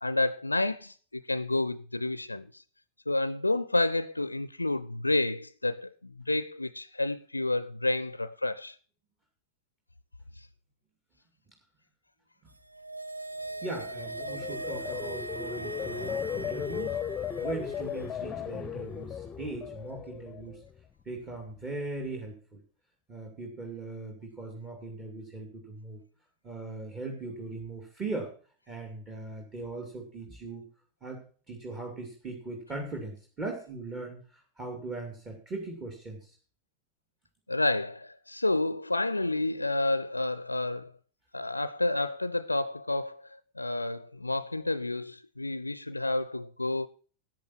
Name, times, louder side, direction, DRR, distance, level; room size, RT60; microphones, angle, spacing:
voice 1, 0.0-2.6 3.1-8.8 37.5-40.9 41.3-46.9, left 2 dB, 85° left, 0.5 m, -30 dB
sound 1, 12.6-18.0 18.3-18.4, right 2 dB, 85° right, 0.9 m, -40 dB
sound 2, 13.6-20.8 21.2-21.6, left 8 dB, 20° left, 0.8 m, -37 dB
voice 2, 13.6-17.0 17.4-20.6 21.1-22.6 23.1-26.0 26.4-28.3 28.7-30.6 31.0-36.3, right 2 dB, 25° right, 2.6 m, -39 dB
13.5 x 8.7 x 4.3 m
figure-of-eight pair, 90°, 0 cm